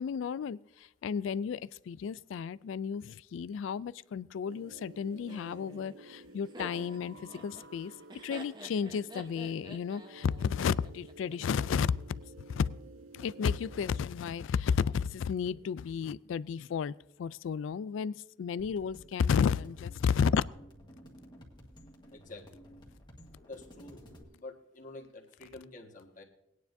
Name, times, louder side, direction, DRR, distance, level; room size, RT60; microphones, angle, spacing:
voice 1, 0.0-7.9 8.2-11.9 12.5-12.7 13.1-16.9 17.2-20.4, left 6 dB, 75° left, 0.3 m, -32 dB
sound 1, 4.5-14.1, right 2 dB, 90° right, 0.7 m, -53 dB
Laughter, 5.3-11.4, right 1 dB, 20° right, 0.9 m, -49 dB
sound 2, 18.6-24.2, equal, 25° left, 1.7 m, -53 dB
voice 2, 22.1-22.5 23.4-26.2, left 2 dB, 40° left, 1.6 m, -48 dB
20.0 x 9.5 x 2.6 m
head